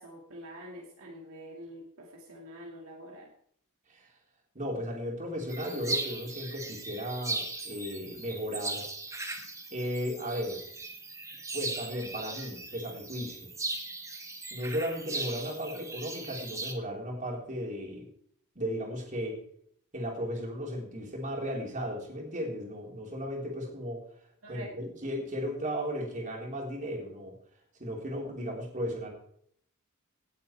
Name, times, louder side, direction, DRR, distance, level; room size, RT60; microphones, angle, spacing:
voice 1, 0.0-3.3 15.7-15.9 24.4-24.8, equal, 65° right, -1 dB, 2.4 m, -46 dB
voice 2, 4.6-8.8 9.7-10.6 11.5-13.5 14.5-18.1 18.6-19.4 19.9-24.0 24.5-27.3 27.8-29.1, equal, 35° right, -1 dB, 3.6 m, -35 dB
sound 1, 5.5-16.7, right 3 dB, 15° right, 1.4 m, -38 dB
18.0 x 7.8 x 4.5 m, 0.66 s
head